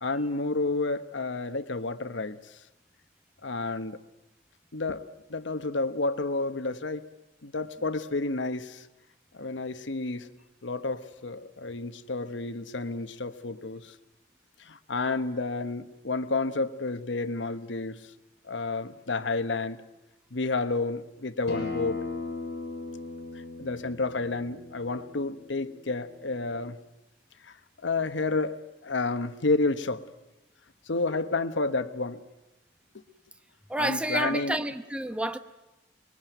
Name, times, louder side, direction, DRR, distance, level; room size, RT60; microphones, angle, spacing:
voice 1, 0.0-2.4 3.4-4.0 4.7-7.1 7.4-8.9 9.3-10.3 10.6-13.9 14.6-18.0 18.5-19.8 20.3-22.0 23.6-26.8 27.4-30.0 30.9-32.2 32.9-33.0 33.8-34.6, left 3 dB, 85° left, 1.1 m, -30 dB
Acoustic guitar, 21.5-26.7, left 3 dB, 60° left, 6.6 m, -38 dB
voice 2, 33.7-35.4, right 1 dB, 5° right, 0.9 m, -29 dB
25.5 x 21.5 x 9.1 m
head